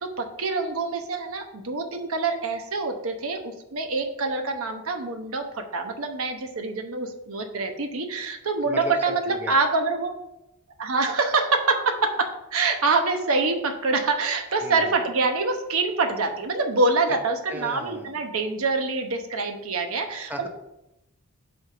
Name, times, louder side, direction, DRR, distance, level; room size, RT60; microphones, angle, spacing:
voice 1, 0.0-10.1 10.8-20.5, right 3 dB, 70° right, 5 dB, 1.0 m, -25 dB
voice 2, 8.6-9.6 14.6-14.9 17.5-18.2 20.3-20.5, equal, 10° right, 3 dB, 0.8 m, -36 dB
7.9 x 3.5 x 5.6 m, 0.88 s
head